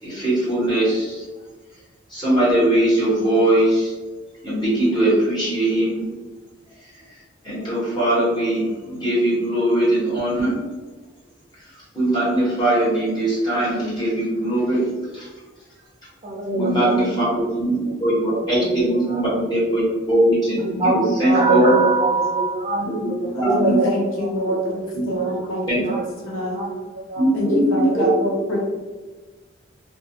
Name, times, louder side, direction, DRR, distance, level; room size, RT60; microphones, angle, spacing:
voice 1, 0.0-1.2 2.1-3.9 4.4-6.1 7.4-10.5 11.9-14.8 15.1-15.3 16.5-20.6 20.8-21.8 22.8-23.8 24.9-25.0 25.7-25.8 27.2-28.0, right 1 dB, 25° left, -9 dB, 1.2 m, -20 dB
voice 2, 16.2-19.6 20.5-23.9 24.2-24.3 24.9-25.6 25.8-26.0 26.3-27.6 27.9-28.0, right 3 dB, 30° right, -4 dB, 0.7 m, -25 dB
voice 3, 23.3-26.6 27.3-28.6, equal, 85° left, -3 dB, 0.7 m, -26 dB
2.5 x 2.3 x 2.7 m, 1.3 s
head